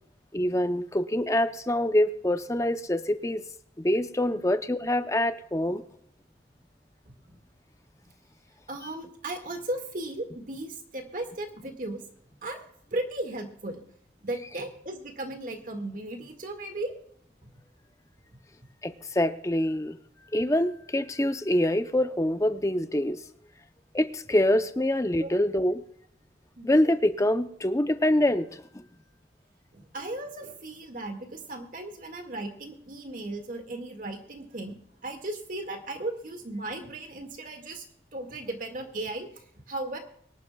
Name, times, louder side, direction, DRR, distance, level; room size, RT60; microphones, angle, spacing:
voice 1, 0.3-3.4 3.8-5.8 18.8-20.0 20.3-23.2 23.9-25.8 26.6-28.8, left 1 dB, 15° left, 10 dB, 0.7 m, -25 dB
voice 2, 7.1-7.4 8.7-12.0 12.4-12.6 12.9-13.8 14.2-16.9 17.4-17.5 25.2-25.5 26.6-26.7 29.7-34.8 35.0-37.8 38.1-39.3 39.7-40.0, right 2 dB, 50° right, 4 dB, 2.0 m, -36 dB
24.0 x 11.0 x 2.3 m, 0.69 s
head